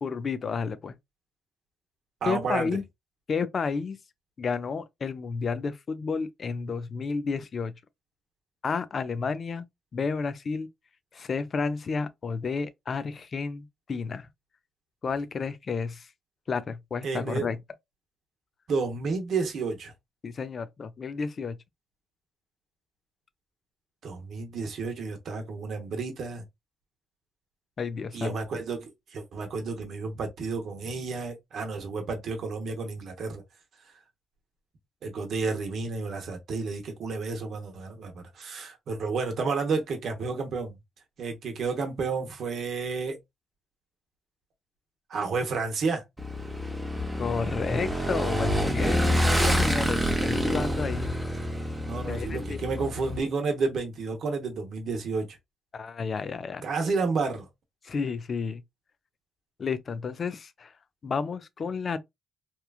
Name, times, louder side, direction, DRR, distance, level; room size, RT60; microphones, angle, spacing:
voice 1, 0.0-1.0 2.3-2.8 3.3-4.0 4.4-7.7 8.6-9.7 9.9-10.7 11.1-14.3 15.0-16.1 16.5-17.6 20.2-21.6 27.8-28.4 47.2-51.1 52.1-52.6 55.7-56.6 57.8-58.6 59.6-60.7 61.0-62.0, left 5 dB, 45° left, 0.4 m, -31 dB
voice 2, 2.2-2.7 17.0-17.5 18.7-19.9 24.0-26.4 28.1-33.4 35.0-40.8 41.2-43.2 45.1-46.0 51.8-55.3 56.6-57.5, right 4 dB, 65° right, 0.8 m, -31 dB
Motorcycle / Engine, 46.2-53.2, equal, 10° right, 0.7 m, -27 dB
2.9 x 2.3 x 2.3 m
cardioid pair, 90°, 0 cm